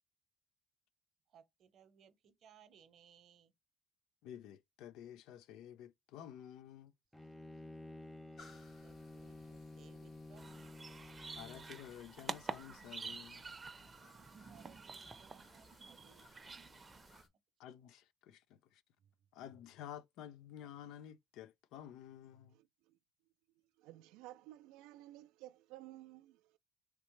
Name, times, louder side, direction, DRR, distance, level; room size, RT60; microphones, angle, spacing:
voice 1, 1.3-3.5 8.3-10.7 14.5-16.3 19.0-19.1, right 8 dB, 60° right, 0.8 m, -65 dB
voice 2, 4.2-6.9 11.4-13.5 16.4-16.5 17.6-18.8 19.3-22.6, left 10 dB, 75° left, 0.4 m, -52 dB
Bowed string instrument, 7.1-11.9, left 2 dB, 10° left, 0.6 m, -52 dB
sound 1, 8.4-17.3, left 3 dB, 55° left, 1.2 m, -64 dB
sound 2, 10.4-17.2, right 4 dB, 30° right, 0.6 m, -48 dB
voice 3, 22.5-23.0 23.8-26.6, right 16 dB, 80° right, 0.3 m, -55 dB
3.2 x 2.9 x 3.1 m
supercardioid pair, 65°, 0 cm